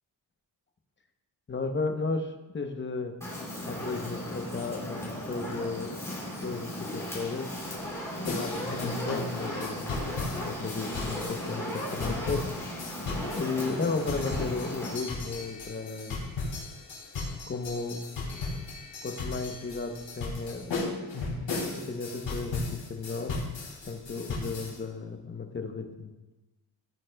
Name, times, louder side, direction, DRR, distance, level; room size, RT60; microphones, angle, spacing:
voice 1, 1.5-3.1 3.6-7.5 8.2-9.8 10.4-12.5 13.3-16.2 17.5-18.0 18.3-18.7 19.0-21.1 21.5-23.4 23.9-26.1, left 4 dB, 25° left, 5 dB, 0.7 m, -34 dB
Fire, 3.2-15.0, equal, 5° left, 3.1 m, -36 dB
sound 1, 8.2-24.8, left 3 dB, 70° left, 3.4 m, -36 dB
15.0 x 9.6 x 2.2 m, 1.1 s
wide cardioid pair, 170°, 44 cm